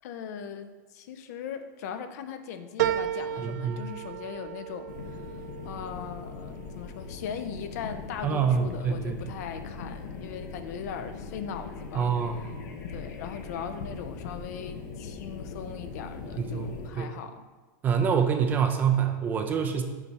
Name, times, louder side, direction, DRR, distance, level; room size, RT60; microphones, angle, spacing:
voice 1, 0.0-12.1 12.4-12.5 12.9-17.5, left 7 dB, 60° left, 9 dB, 0.6 m, -39 dB
sound 1, 2.8-7.6 8.0-8.7 9.1-9.2, right 11 dB, 75° right, 0.4 m, -34 dB
voice 2, 3.4-3.8 8.2-9.2 11.9-12.4 16.4-17.1 17.8-19.8, right 7 dB, 20° right, 5 dB, 0.4 m, -26 dB
sound 2, 4.9-16.9, left 5 dB, 90° left, 0.9 m, -40 dB
6.9 x 4.2 x 4.7 m, 1.3 s
supercardioid pair, 165°, 10 cm